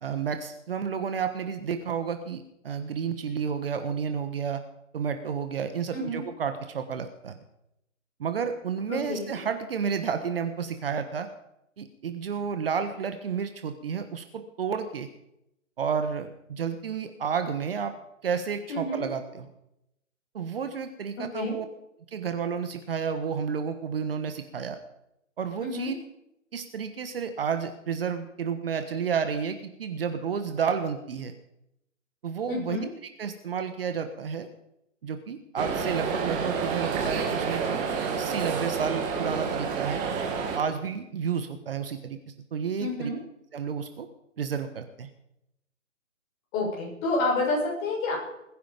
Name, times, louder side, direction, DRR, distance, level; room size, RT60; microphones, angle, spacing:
voice 1, 0.0-4.6 4.9-7.4 8.2-11.3 11.8-15.1 15.8-17.9 18.2-19.5 20.3-21.6 22.1-24.8 25.4-25.9 26.5-31.3 32.2-32.8 33.2-34.5 35.0-37.8 38.1-40.0 40.5-42.2 42.5-43.1 43.5-44.1 44.4-45.1, right 6 dB, 45° right, 9 dB, 1.4 m, -31 dB
voice 2, 5.9-6.2 8.9-9.4 18.7-19.0 21.3-21.6 25.6-25.9 32.5-32.9 42.8-43.2 46.5-48.2, left 2 dB, 20° left, -3 dB, 6.9 m, -29 dB
sound 1, 35.6-40.6, right 5 dB, 20° right, 2.0 m, -29 dB
20.5 x 10.5 x 5.2 m, 0.82 s
figure-of-eight pair, 140°, 40 cm